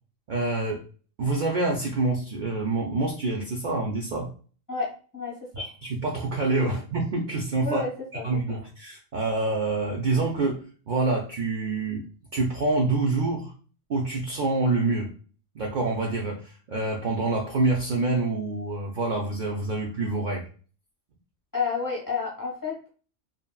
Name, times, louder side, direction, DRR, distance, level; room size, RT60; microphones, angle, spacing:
voice 1, 0.3-0.8 1.2-4.3 5.5-7.8 8.2-12.1 12.3-13.5 13.9-15.1 15.5-20.4, right 3 dB, 60° right, 0 dB, 0.5 m, -26 dB
voice 2, 7.6-8.2 21.5-22.9, left 5 dB, 20° left, -4 dB, 0.8 m, -29 dB
2.8 x 2.7 x 2.2 m, 0.39 s
omnidirectional pair, 1.3 m